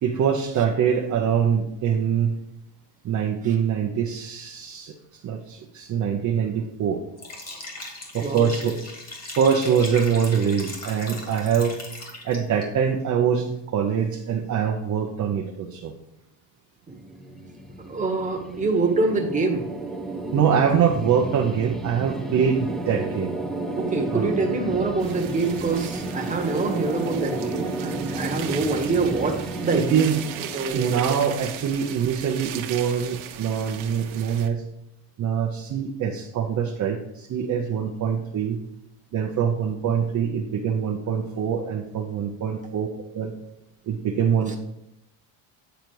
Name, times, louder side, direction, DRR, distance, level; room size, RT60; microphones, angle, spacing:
voice 1, 0.0-2.4 3.0-4.9 5.2-7.0 8.1-8.8 9.4-11.8 12.2-15.9 20.3-23.4 24.1-24.3 29.7-30.2 30.7-34.6 35.2-38.6 39.1-42.9 43.1-43.3 43.9-44.6, right 7 dB, 35° right, 1 dB, 0.7 m, -24 dB
Liquid, 7.2-12.6, left 2 dB, 30° left, 2.2 m, -38 dB
voice 2, 8.2-8.5 16.9-17.0 17.9-19.7 23.8-30.0 30.5-31.0 44.5-44.6, right 3 dB, 15° right, 1 dB, 1.3 m, -25 dB
sound 1, 16.9-31.9, right 2 dB, ahead, 0.4 m, -33 dB
sound 2, 25.0-34.5, right 10 dB, 75° right, 1.0 m, -38 dB
9.1 x 4.0 x 4.7 m, 0.84 s
cardioid pair, 125°, 50 cm